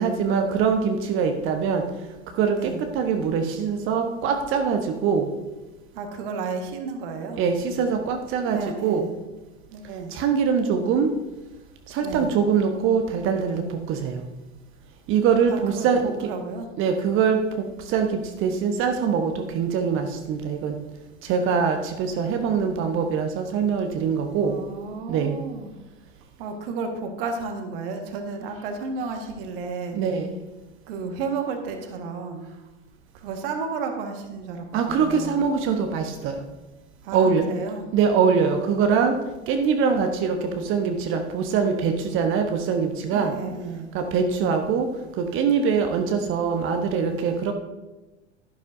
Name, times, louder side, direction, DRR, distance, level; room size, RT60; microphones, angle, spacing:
voice 1, 0.0-1.8 2.4-5.3 7.4-9.0 10.1-11.1 11.9-14.2 15.1-16.0 16.8-20.7 21.2-24.5 25.1-25.4 29.9-30.3 34.7-36.4 37.1-37.4 37.9-39.2 39.5-43.3 43.9-44.9 45.2-47.5, right 6 dB, 35° right, 5 dB, 1.0 m, -23 dB
voice 2, 2.5-2.8 5.9-7.4 8.4-9.1 9.7-10.1 12.0-12.3 15.5-16.7 24.4-25.7 26.4-30.0 30.9-32.5 33.1-35.4 37.0-37.8 43.1-43.9, right 4 dB, 50° right, 4 dB, 1.6 m, -32 dB
12.0 x 11.5 x 2.6 m, 1.1 s
figure-of-eight pair, 90°, 35 cm